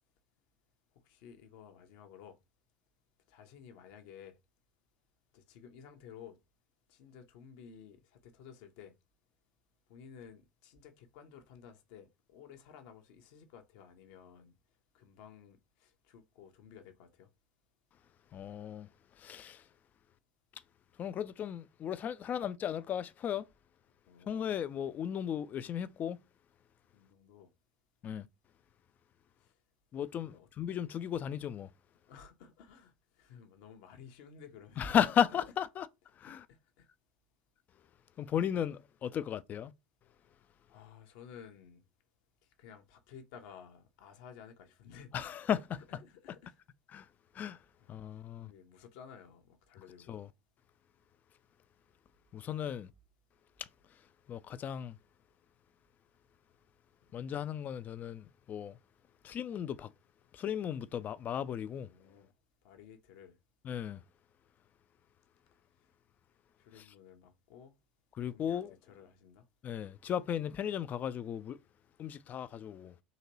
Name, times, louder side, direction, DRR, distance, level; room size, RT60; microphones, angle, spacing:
voice 1, 1.0-2.4 3.3-4.4 5.3-6.4 6.9-8.9 9.9-14.5 14.9-17.3 24.1-24.4 26.9-27.5 29.4-29.5 30.2-30.5 32.1-34.9 36.5-36.9 38.5-38.6 40.7-41.8 42.6-45.1 46.0-46.6 47.8-48.0 48.4-50.2 52.5-52.6 61.9-62.3 62.6-63.4 66.6-67.7 68.3-68.6 68.9-69.5, left 7 dB, 60° left, 0.8 m, -54 dB
voice 2, 18.3-18.9 19.2-19.7 21.0-23.5 24.3-26.2 28.0-28.3 29.9-31.7 34.8-35.9 36.2-36.5 38.2-39.7 45.1-46.0 46.3-46.4 46.9-47.1 47.3-47.6 47.9-48.5 50.1-50.3 52.3-52.9 53.6-53.7 54.3-55.0 57.1-58.8 59.2-59.9 60.3-61.9 63.6-64.0 66.7-66.9 68.1-68.7 69.6-71.6 72.0-72.9, left 9 dB, 35° left, 0.4 m, -35 dB
4.0 x 2.9 x 2.8 m
figure-of-eight pair, 70°, 5 cm